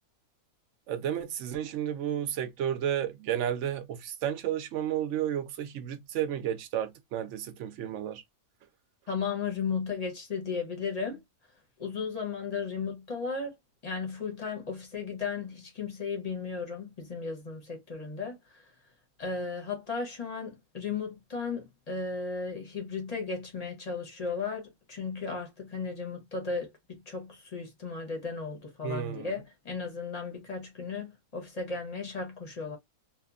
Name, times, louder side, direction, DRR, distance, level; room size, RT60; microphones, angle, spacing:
voice 1, 0.9-8.2 28.8-29.3, right 10 dB, 65° right, 0.8 m, -32 dB
voice 2, 9.1-11.2 11.8-13.6 13.8-18.6 19.2-32.8, left 5 dB, 35° left, 0.7 m, -35 dB
2.8 x 2.2 x 2.4 m
omnidirectional pair, 1.5 m